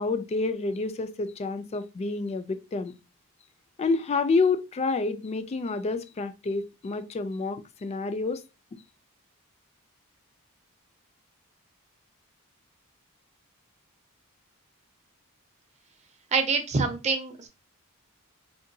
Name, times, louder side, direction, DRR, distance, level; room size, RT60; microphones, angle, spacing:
voice 1, 0.0-2.9 3.8-8.4, left 3 dB, 30° left, 0.3 m, -28 dB
voice 2, 16.3-17.5, right 4 dB, 30° right, 0.6 m, -26 dB
3.7 x 2.2 x 2.7 m
head